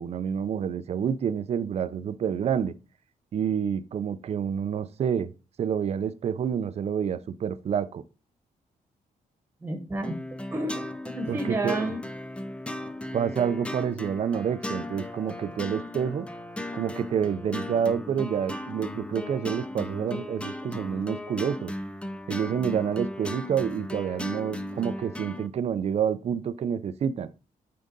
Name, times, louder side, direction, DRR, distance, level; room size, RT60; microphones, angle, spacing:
voice 1, 0.0-2.7 3.3-5.3 5.6-8.0 11.3-11.9 13.1-16.3 16.7-21.7 22.3-27.3, right 8 dB, 45° right, 0.5 m, -28 dB
voice 2, 9.6-10.2 10.5-12.0, right 1 dB, 15° right, 1.2 m, -30 dB
sound 1, 10.0-25.5, left 1 dB, 10° left, 0.5 m, -36 dB
9.0 x 3.8 x 3.9 m
wide cardioid pair, 160°, 14 cm